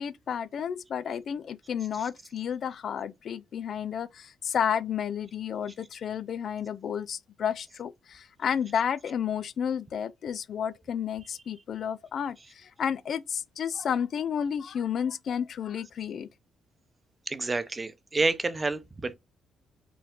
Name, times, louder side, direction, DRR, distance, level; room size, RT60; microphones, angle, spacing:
voice 1, 0.0-16.3, left 8 dB, 60° left, 0.3 m, -31 dB
voice 2, 17.3-19.1, right 3 dB, 25° right, 0.7 m, -29 dB
4.5 x 2.3 x 3.7 m
cardioid pair, 90°, 0 cm